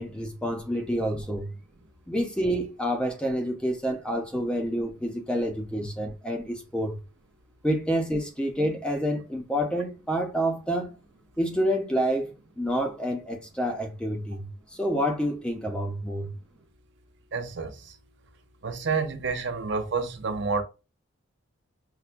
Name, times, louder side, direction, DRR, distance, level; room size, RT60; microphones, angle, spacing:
voice 1, 0.0-1.5 2.1-7.0 7.6-10.9 11.4-14.5 14.7-16.3, equal, 5° left, 0.5 m, -28 dB
voice 2, 17.3-17.9 18.6-20.6, right 4 dB, 60° right, 0.6 m, -29 dB
5.6 x 2.1 x 2.5 m
head